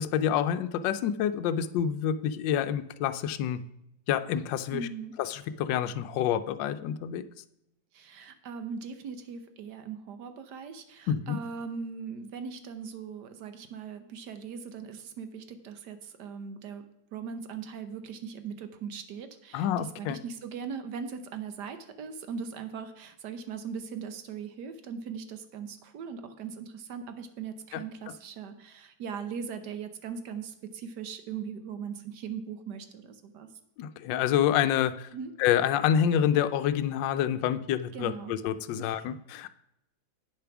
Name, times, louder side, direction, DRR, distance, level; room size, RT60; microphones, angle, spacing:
voice 1, 0.0-3.6 4.1-4.9 5.2-7.2 11.1-11.4 19.5-20.2 33.8-35.1 35.4-39.6, left 9 dB, 75° left, 11 dB, 1.2 m, -27 dB
voice 2, 4.7-5.2 7.9-33.5 35.1-35.3 37.9-38.3 38.8-39.0, right 6 dB, 65° right, 9 dB, 1.3 m, -39 dB
8.8 x 6.8 x 5.9 m, 0.83 s
omnidirectional pair, 2.1 m